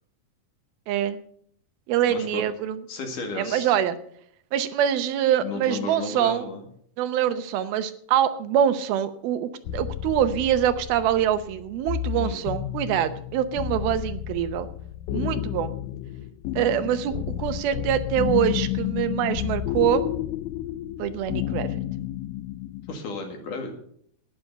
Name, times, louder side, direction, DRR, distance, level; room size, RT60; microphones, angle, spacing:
voice 1, 0.9-1.2 1.9-2.8 3.4-4.0 4.5-6.5 7.0-14.7 15.1-15.8 16.6-20.0 21.0-21.7, right 10 dB, 80° right, 11 dB, 2.7 m, -24 dB
voice 2, 2.0-2.5 2.9-3.7 5.4-6.6 12.1-12.4 22.9-23.7, left 3 dB, 60° left, 3 dB, 3.5 m, -33 dB
sound 1, 9.7-23.0, left 13 dB, 80° left, 2.1 m, -31 dB
11.5 x 10.0 x 6.7 m, 0.64 s
omnidirectional pair, 4.3 m